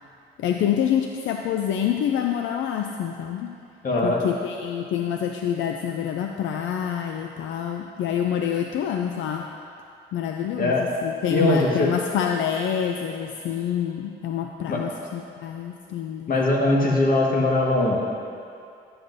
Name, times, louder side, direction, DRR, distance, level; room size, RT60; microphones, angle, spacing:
voice 1, 0.4-3.6 4.0-9.5 10.1-16.3, left 9 dB, 75° left, 3 dB, 0.4 m, -27 dB
voice 2, 3.8-4.2 10.6-10.9 11.3-11.9 14.7-14.8 16.3-18.0, left 2 dB, 45° left, -2 dB, 1.5 m, -21 dB
11.0 x 7.8 x 2.6 m, 2.5 s
cardioid pair, 90°, 20 cm